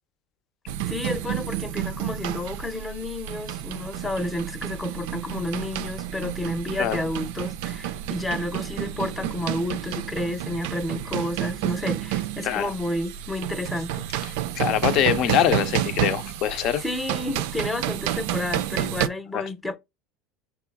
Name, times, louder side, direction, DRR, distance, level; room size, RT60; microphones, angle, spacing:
sound 1, 0.7-19.1, right 12 dB, 75° right, 0.4 m, -30 dB
voice 1, 0.9-14.4 16.8-19.8, left 2 dB, 15° left, 0.7 m, -31 dB
voice 2, 14.6-16.8 19.3-19.4, left 10 dB, 60° left, 0.6 m, -23 dB
6.0 x 2.3 x 3.4 m
supercardioid pair, 100°, 0 cm